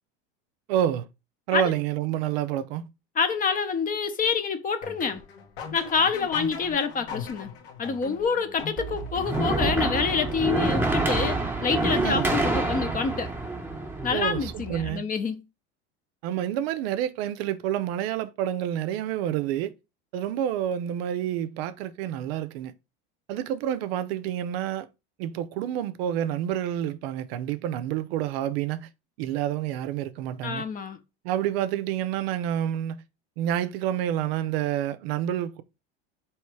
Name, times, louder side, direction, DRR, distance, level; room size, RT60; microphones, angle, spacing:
voice 1, 0.7-1.1 1.5-2.9 12.0-12.3 14.1-15.1 16.2-19.7 20.1-22.7 23.3-24.9 25.2-28.9 29.2-30.6 31.2-33.0 33.4-35.6, right 11 dB, 70° right, 0.6 m, -28 dB
voice 2, 3.2-5.2 5.7-7.5 7.8-13.3 14.0-15.4 30.4-31.0, left 5 dB, 25° left, 0.7 m, -27 dB
sound 1, 4.8-10.7, left 5 dB, 75° left, 1.3 m, -39 dB
sound 2, 8.8-14.9, right 2 dB, 5° right, 0.9 m, -27 dB
3.2 x 3.1 x 4.6 m
supercardioid pair, 105°, 31 cm